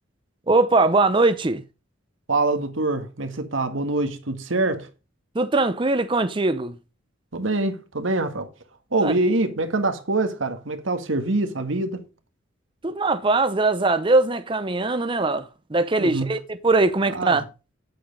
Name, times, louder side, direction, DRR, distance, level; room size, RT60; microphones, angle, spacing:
voice 1, 0.5-1.6 5.3-6.7 9.0-9.1 12.8-17.4, right 3 dB, 25° right, 0.6 m, -21 dB
voice 2, 2.3-4.9 7.3-8.5 8.9-12.0 16.0-16.3 17.1-17.4, right 2 dB, 85° right, 1.6 m, -24 dB
9.3 x 7.7 x 5.2 m
head